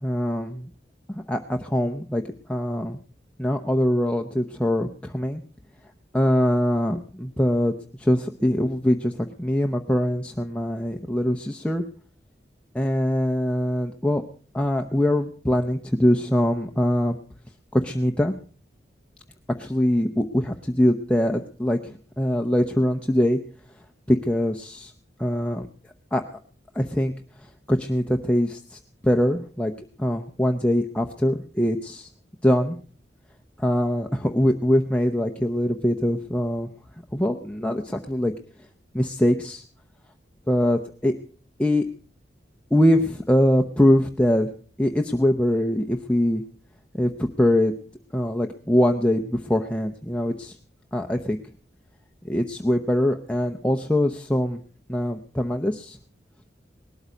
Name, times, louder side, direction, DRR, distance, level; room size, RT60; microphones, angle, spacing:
voice 1, 0.0-0.7 1.1-2.2 2.5-3.0 3.4-5.4 6.1-11.8 12.7-14.2 14.5-17.2 17.7-18.3 19.6-23.4 24.1-24.9 25.2-25.7 26.1-26.4 26.7-27.1 27.7-29.7 30.0-32.1 32.4-32.8 33.6-36.7 37.1-38.3 38.9-39.6 40.5-41.1 41.6-41.8 42.7-44.5 44.8-46.4 46.9-47.1 47.4-47.7 48.1-50.5 50.9-51.4 52.2-54.6 54.9-56.0, equal, 5° left, 3 dB, 0.8 m, -23 dB
19.5 x 12.5 x 5.1 m, 0.43 s
head